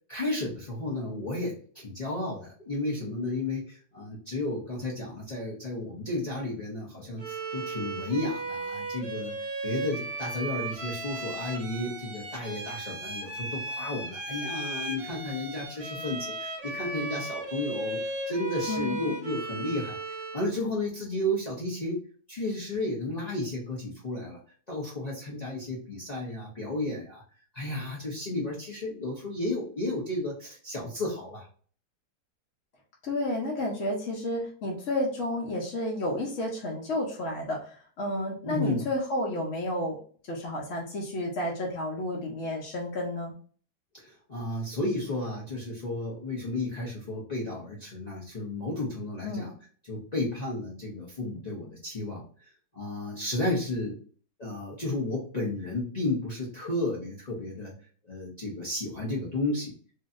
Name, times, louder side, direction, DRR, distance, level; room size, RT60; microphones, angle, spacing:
voice 1, 0.1-9.3 9.6-22.0 22.3-24.4 24.7-27.2 27.5-31.5 38.4-38.9 43.9-49.5 49.8-52.2 52.7-54.0 54.4-57.7 58.0-59.7, left 2 dB, 75° left, -5 dB, 0.3 m, -33 dB
Bowed string instrument, 7.2-20.6, right 2 dB, 60° right, 0.8 m, -36 dB
voice 2, 18.7-19.0 33.0-40.0 40.3-43.3 49.2-49.5, left 1 dB, 55° left, -4 dB, 0.9 m, -31 dB
3.0 x 2.7 x 2.4 m, 0.44 s
omnidirectional pair, 1.9 m